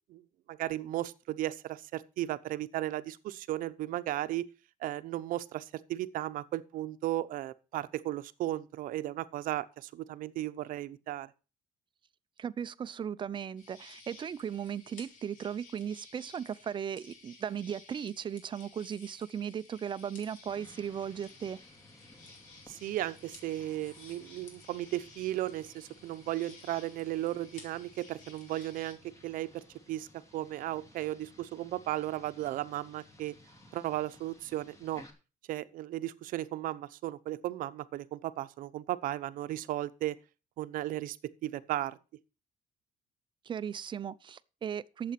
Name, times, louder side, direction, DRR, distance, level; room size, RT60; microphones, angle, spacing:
voice 1, 0.5-4.5 4.8-11.3 22.7-33.4 33.7-35.0 35.5-40.2 40.6-41.2 41.4-42.0, right 14 dB, 75° right, 0.8 m, -35 dB
voice 2, 12.4-21.6 43.5-45.1, right 8 dB, 35° right, 0.6 m, -37 dB
sound 1, 13.6-28.9, left 4 dB, 65° left, 3.8 m, -55 dB
sound 2, 20.5-35.1, left 1 dB, 20° left, 2.6 m, -58 dB
11.5 x 7.8 x 5.9 m
cardioid pair, 130°, 14 cm